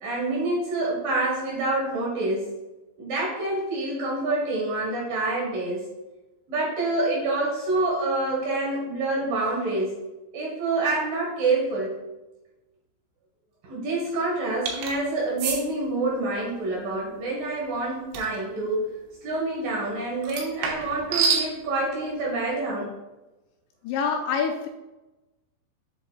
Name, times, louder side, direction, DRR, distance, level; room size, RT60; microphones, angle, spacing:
voice 1, 0.0-2.5 3.0-5.9 6.5-10.0 10.3-12.0 13.6-18.9 19.2-22.9, right 2 dB, 60° right, -4 dB, 2.6 m, -27 dB
sound 1, 14.7-14.9 15.4-15.6 18.1-18.4 20.2-21.5, right 5 dB, 80° right, 3.3 m, -26 dB
voice 2, 23.8-24.7, left 6 dB, 85° left, 3 dB, 2.7 m, -26 dB
7.7 x 7.1 x 2.2 m, 1.0 s
omnidirectional pair, 5.4 m